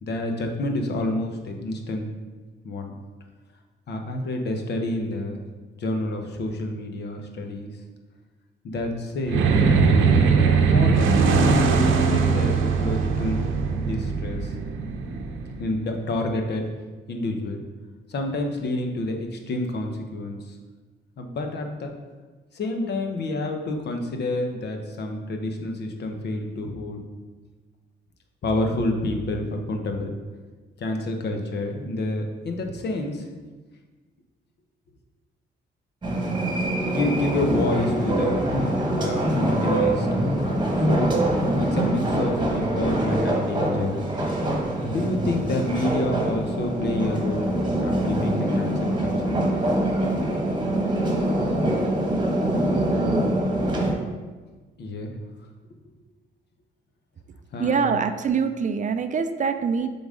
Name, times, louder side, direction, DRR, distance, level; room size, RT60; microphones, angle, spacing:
voice 1, 0.0-2.1 2.6-2.9 3.9-5.4 5.8-7.7 8.6-9.4 10.4-13.4 13.7-14.5 15.6-16.7 17.1-17.6 18.1-20.6 21.2-21.9 22.5-27.0 28.4-30.1 30.8-33.3 36.8-38.4 39.0-41.2 41.6-43.9 44.9-49.4 54.8-55.1 57.5-57.9, left 2 dB, 60° left, 4 dB, 0.9 m, -28 dB
sound 1, 9.2-15.9, right 5 dB, 80° right, 0.7 m, -20 dB
sound 2, 36.0-53.9, right 1 dB, 25° right, 1.3 m, -24 dB
voice 2, 57.6-59.9, right 6 dB, 40° right, 9 dB, 0.4 m, -24 dB
7.0 x 4.0 x 3.7 m, 1.3 s
cardioid pair, 90°, 20 cm